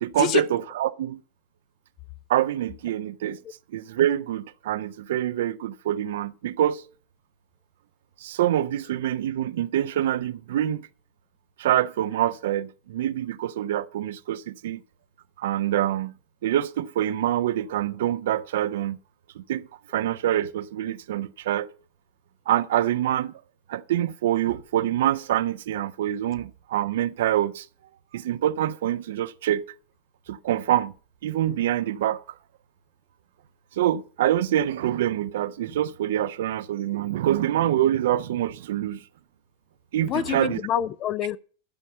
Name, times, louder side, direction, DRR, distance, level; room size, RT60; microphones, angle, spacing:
voice 1, 0.0-1.2 2.3-3.4 3.7-6.8 8.2-10.9 11.6-14.8 15.4-16.1 16.4-19.0 19.4-21.7 22.5-23.3 23.7-27.7 28.1-29.6 30.3-30.9 31.2-32.2 33.8-39.0 39.9-40.6, right 12 dB, 55° right, 0.6 m, -25 dB
voice 2, 40.0-41.4, left 11 dB, 35° left, 0.6 m, -26 dB
12.5 x 5.5 x 7.9 m
figure-of-eight pair, 90°, 0 cm